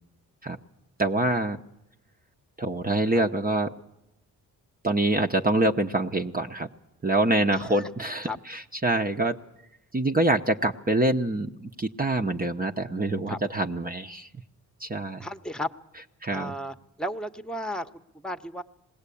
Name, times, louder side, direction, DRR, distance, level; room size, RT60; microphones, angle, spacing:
voice 1, 1.0-1.6 2.6-3.7 4.8-6.7 7.0-9.4 9.9-14.3 14.8-15.3 16.2-16.5, right 2 dB, 25° right, 3 dB, 0.9 m, -25 dB
voice 2, 7.5-7.9 8.2-8.4 13.3-13.4 15.2-15.7 16.3-18.6, equal, ahead, 10 dB, 1.1 m, -34 dB
20.5 x 17.0 x 8.5 m, 0.87 s
supercardioid pair, 55°, 38 cm